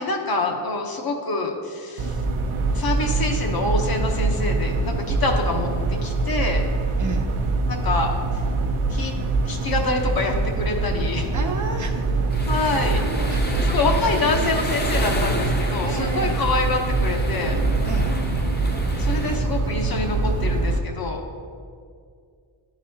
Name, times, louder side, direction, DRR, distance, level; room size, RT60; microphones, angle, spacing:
voice 1, 0.0-2.2 2.7-5.7 6.0-6.6 7.7-8.1 8.9-9.1 9.5-11.3 12.5-13.0 13.6-17.6 19.0-21.2, left 3 dB, 45° left, 2 dB, 0.8 m, -26 dB
sound 1, 2.0-20.8, right 3 dB, 75° right, 0.7 m, -24 dB
voice 2, 7.0-7.3 11.3-13.7 15.8-16.4 17.8-18.2, right 3 dB, 40° right, 3 dB, 0.5 m, -33 dB
sound 2, 12.3-19.4, left 2 dB, 20° left, 0.7 m, -31 dB
10.5 x 4.0 x 2.7 m, 2.2 s
wide cardioid pair, 110°, 50 cm